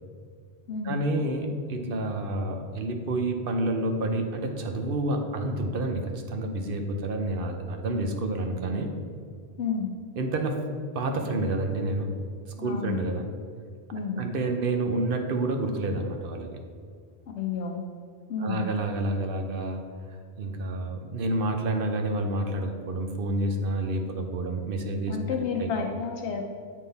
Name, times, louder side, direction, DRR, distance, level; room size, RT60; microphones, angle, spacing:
voice 1, 0.8-8.9 10.2-10.6 10.9-12.1 12.6-13.3 14.2-16.6 18.4-19.9 20.4-25.7, right 2 dB, 60° right, 4 dB, 0.8 m, -29 dB
voice 2, 9.6-9.9 12.6-13.0 13.9-14.2 17.3-17.8 18.3-18.6 25.1-26.4, left 5 dB, 80° left, 2 dB, 0.9 m, -30 dB
8.4 x 3.7 x 3.9 m, 2.2 s
omnidirectional pair, 1.1 m